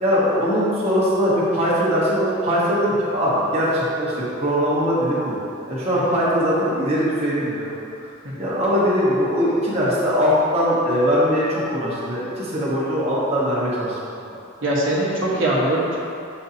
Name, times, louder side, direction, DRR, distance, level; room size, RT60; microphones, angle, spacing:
voice 1, 0.0-5.3 5.7-7.8 8.4-14.0, equal, 30° right, -8 dB, 1.2 m, -21 dB
voice 2, 14.6-16.0, right 1 dB, 80° right, -6 dB, 1.3 m, -22 dB
6.8 x 5.5 x 2.8 m, 2.8 s
head